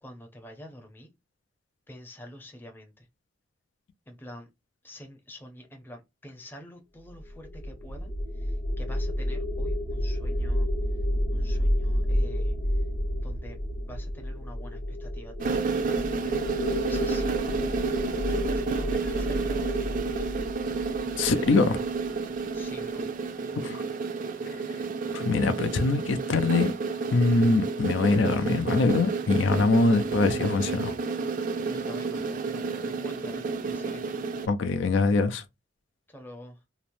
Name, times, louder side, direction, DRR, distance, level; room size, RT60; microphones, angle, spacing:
voice 1, 0.0-1.1 1.9-3.1 4.1-4.5 4.8-8.1 8.4-10.7 11.3-12.5 13.1-13.6 13.9-20.0 22.5-23.0 31.7-34.0 36.1-36.6, equal, 10° left, 0.6 m, -47 dB
sound 1, 7.1-22.3, left 1 dB, 55° left, 0.9 m, -30 dB
sound 2, 15.4-34.5, right 4 dB, 45° right, 0.4 m, -30 dB
voice 2, 21.2-21.8 23.5-23.8 24.4-24.6 25.1-26.7 27.1-30.9 34.5-35.4, left 3 dB, 80° left, 0.5 m, -23 dB
3.0 x 2.0 x 2.5 m
head